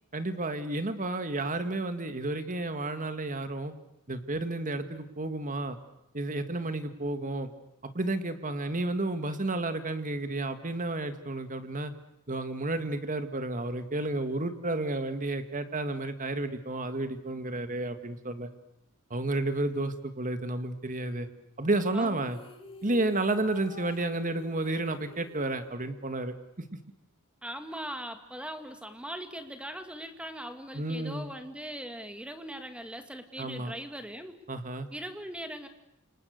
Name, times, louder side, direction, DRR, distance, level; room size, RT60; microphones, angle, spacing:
voice 1, 0.1-3.7 4.1-5.8 6.1-7.5 7.9-11.9 12.3-18.5 19.1-21.3 21.6-22.4 22.8-26.3 30.7-31.3 33.4-33.7 34.5-34.9, right 2 dB, 40° right, 9 dB, 2.0 m, -31 dB
sound 1, 22.1-26.4, left 3 dB, 25° left, 2.5 m, -49 dB
voice 2, 27.4-34.4 34.9-35.7, equal, 5° right, 7 dB, 2.2 m, -40 dB
30.0 x 27.5 x 6.7 m, 0.80 s
head